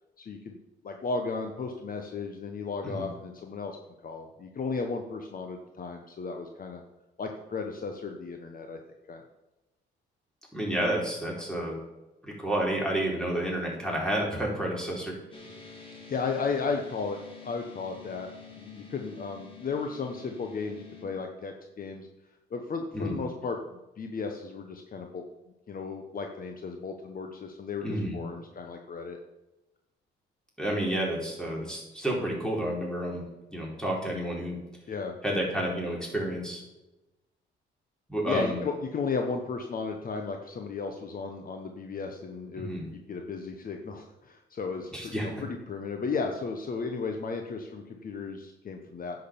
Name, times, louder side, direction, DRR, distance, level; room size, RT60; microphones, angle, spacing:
voice 1, 0.2-0.6 0.8-3.8 4.0-6.8 7.2-8.8 9.1-9.2 16.1-18.3 18.6-22.1 22.5-25.2 25.7-29.2 34.9-35.1 38.2-49.2, left 4 dB, 45° left, 4 dB, 1.2 m, -34 dB
voice 2, 10.5-11.7 12.2-15.1 22.9-23.2 27.8-28.2 30.6-33.2 33.5-34.6 35.2-36.6 38.1-38.6 42.6-42.9 44.9-45.4, right 1 dB, 5° left, -2 dB, 4.5 m, -30 dB
sound 1, 15.3-21.0, left 6 dB, 25° left, 3.2 m, -48 dB
10.0 x 6.6 x 7.0 m, 1.0 s
cardioid pair, 90°, 20 cm